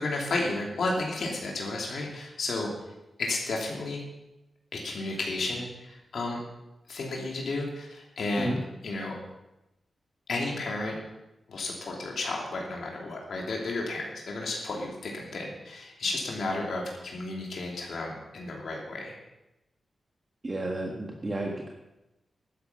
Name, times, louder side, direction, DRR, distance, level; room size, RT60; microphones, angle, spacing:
voice 1, 0.0-2.7 3.2-4.0 4.7-6.4 6.9-8.6 8.8-9.2 10.3-11.0 11.5-19.1, left 2 dB, 75° left, -1 dB, 3.0 m, -32 dB
voice 2, 20.4-21.7, right 1 dB, 35° right, 0 dB, 1.6 m, -32 dB
12.0 x 10.5 x 5.6 m, 0.96 s
cardioid pair, 85°, 0 cm